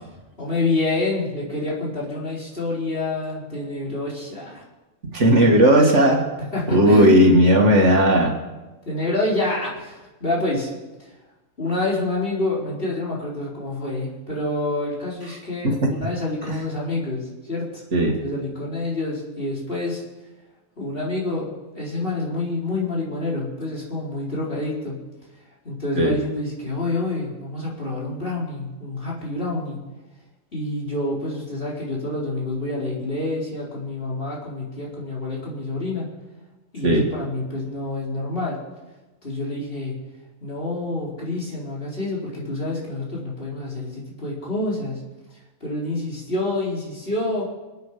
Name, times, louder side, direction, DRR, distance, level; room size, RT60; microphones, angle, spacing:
voice 1, 0.4-4.6 6.5-7.2 8.9-10.7 11.0-11.1 11.6-17.8 18.2-20.0 20.8-21.5 21.7-25.0 25.6-29.8 30.5-36.1 36.7-38.6 39.2-40.0 40.4-45.0 45.6-47.5, left 2 dB, 45° left, -5 dB, 4.4 m, -27 dB
voice 2, 5.1-6.3 6.7-8.4 15.6-15.9 17.9-18.2 26.0-26.2 36.8-37.1, equal, 60° right, 1 dB, 2.5 m, -16 dB
28.0 x 9.3 x 5.0 m, 1.1 s
omnidirectional pair, 1.4 m